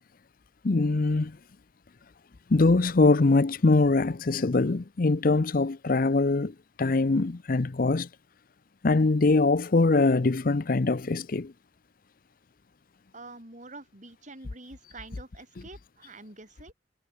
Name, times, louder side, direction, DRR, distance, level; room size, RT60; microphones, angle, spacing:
voice 1, 0.6-1.3 2.5-8.1 8.8-11.5, left 3 dB, 50° left, 0.6 m, -23 dB
voice 2, 13.1-16.7, right 2 dB, 45° right, 6.3 m, -46 dB
head